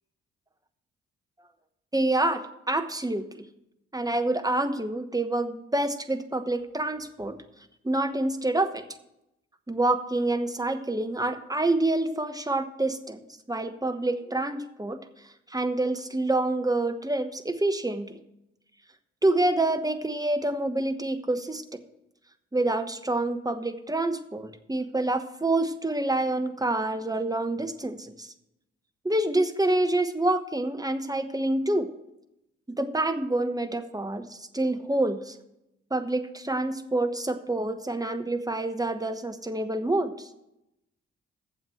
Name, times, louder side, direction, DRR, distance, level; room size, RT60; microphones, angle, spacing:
voice 1, 1.9-3.5 3.9-7.4 7.8-8.8 9.7-15.0 15.5-18.2 19.2-21.6 22.5-28.3 29.0-31.9 32.7-35.4 35.9-40.3, right 2 dB, 10° right, 9 dB, 1.1 m, -27 dB
8.4 x 7.3 x 7.6 m, 0.85 s
hypercardioid pair, 40°, 31 cm